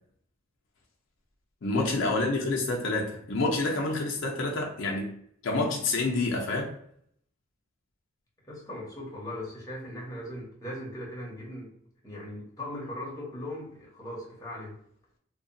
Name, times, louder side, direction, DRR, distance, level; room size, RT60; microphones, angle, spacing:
voice 1, 1.6-6.7, left 2 dB, 60° left, -1 dB, 0.5 m, -28 dB
voice 2, 8.4-11.7 12.0-14.8, left 1 dB, 15° left, -4 dB, 0.8 m, -39 dB
2.7 x 2.2 x 2.5 m, 0.66 s
head